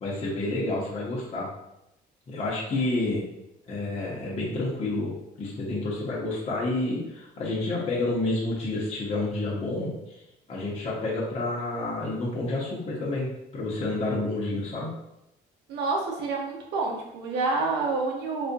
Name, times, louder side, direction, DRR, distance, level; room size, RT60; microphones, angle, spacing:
voice 1, 0.0-1.5 2.3-3.2 3.7-10.2 10.5-13.3 13.5-14.9, left 2 dB, 35° left, -5 dB, 1.0 m, -29 dB
voice 2, 15.7-18.5, right 3 dB, 80° right, -1 dB, 0.9 m, -28 dB
4.1 x 2.6 x 2.6 m, 0.86 s
cardioid pair, 110°, 17 cm